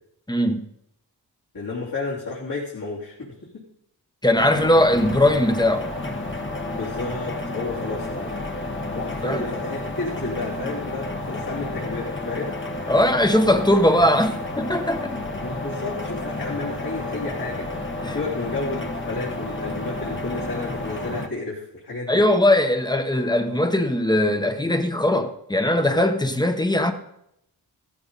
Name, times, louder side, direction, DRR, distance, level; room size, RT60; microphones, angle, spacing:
voice 1, 0.3-0.6 4.2-5.9 9.2-9.5 12.9-15.2 18.0-18.2 22.1-26.9, left 1 dB, 10° left, 7 dB, 1.1 m, -20 dB
voice 2, 1.5-3.7 4.5-4.7 6.7-8.4 8.9-12.7 15.4-22.2, left 3 dB, 60° left, -7 dB, 3.4 m, -32 dB
sound 1, 4.4-21.3, left 2 dB, 30° left, 1.4 m, -31 dB
16.0 x 14.0 x 4.1 m, 0.79 s
wide cardioid pair, 125°, 41 cm